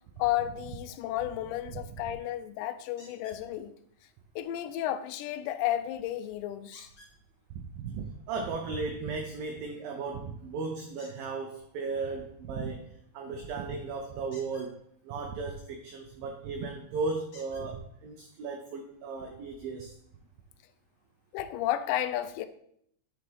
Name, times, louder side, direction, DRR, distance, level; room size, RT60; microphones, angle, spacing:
voice 1, 0.2-3.7 4.4-6.9 21.3-22.5, left 12 dB, 85° left, 2.7 m, -32 dB
sound 1, 3.0-3.4 6.7-7.1 11.0-11.3 14.2-14.7 16.3-16.4 17.3-17.7 18.7-18.8 19.2-19.3, left 2 dB, 65° left, 0.9 m, -53 dB
voice 2, 7.5-20.0, right 4 dB, 90° right, 2.0 m, -36 dB
10.0 x 4.8 x 3.4 m
omnidirectional pair, 4.9 m